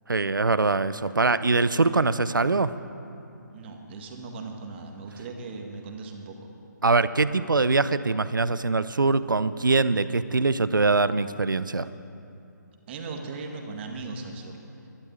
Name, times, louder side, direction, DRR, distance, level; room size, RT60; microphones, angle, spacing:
voice 1, 0.1-2.7 6.8-11.9, right 3 dB, 90° right, 15 dB, 0.6 m, -23 dB
voice 2, 3.5-6.5 12.9-14.6, right 3 dB, 35° right, 3 dB, 1.8 m, -38 dB
12.0 x 11.0 x 9.0 m, 2.7 s
figure-of-eight pair, 145°, 10 cm